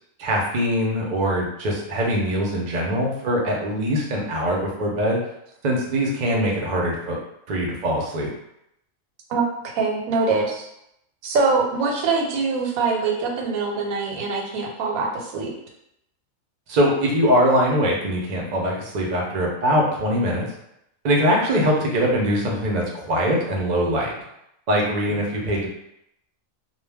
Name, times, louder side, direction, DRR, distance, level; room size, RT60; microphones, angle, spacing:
voice 1, 0.2-5.2 5.6-7.2 7.5-8.3 16.7-20.4 21.0-24.1 24.7-25.7, equal, 55° right, -1 dB, 0.4 m, -22 dB
voice 2, 9.3-10.7 11.2-15.5, right 4 dB, 90° right, 1 dB, 1.0 m, -23 dB
2.2 x 2.2 x 3.3 m, 0.80 s
omnidirectional pair, 1.4 m